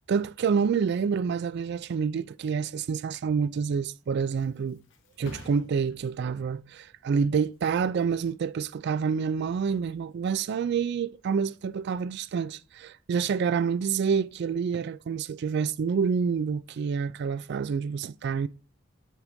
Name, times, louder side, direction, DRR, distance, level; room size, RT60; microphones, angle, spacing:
voice 1, 0.1-4.8 5.2-18.5, right 6 dB, 55° right, 0.3 m, -28 dB
Thump thud, 3.7-11.1 11.5-12.0, left 2 dB, 60° left, 1.0 m, -53 dB
7.3 x 3.6 x 3.8 m
head